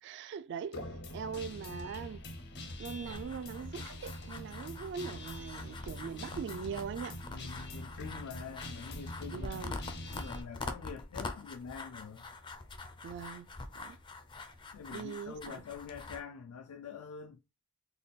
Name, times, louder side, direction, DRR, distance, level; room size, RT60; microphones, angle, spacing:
voice 1, 0.0-2.2 2.8-7.6 9.3-9.8 13.0-13.5 13.7-14.0 14.9-15.6, right 6 dB, 55° right, 0.3 m, -41 dB
Guitar, 0.7-10.4, left 1 dB, 50° left, 0.7 m, -44 dB
sound 1, 3.0-16.2, left 3 dB, 20° left, 0.4 m, -45 dB
voice 2, 7.3-12.2 14.7-17.4, left 6 dB, 85° left, 0.4 m, -46 dB
3.5 x 2.2 x 4.0 m
head